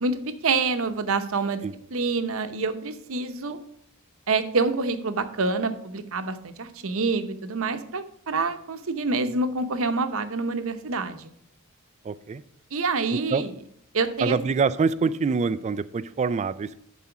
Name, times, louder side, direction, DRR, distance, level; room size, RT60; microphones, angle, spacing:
voice 1, 0.0-1.6 1.9-3.6 4.3-11.3 12.7-13.5 13.9-14.4, right 3 dB, 70° right, 9 dB, 0.8 m, -27 dB
voice 2, 12.0-12.4 13.1-13.4 14.2-16.8, right 5 dB, 30° right, 14 dB, 0.3 m, -25 dB
11.0 x 4.2 x 5.9 m, 0.70 s
head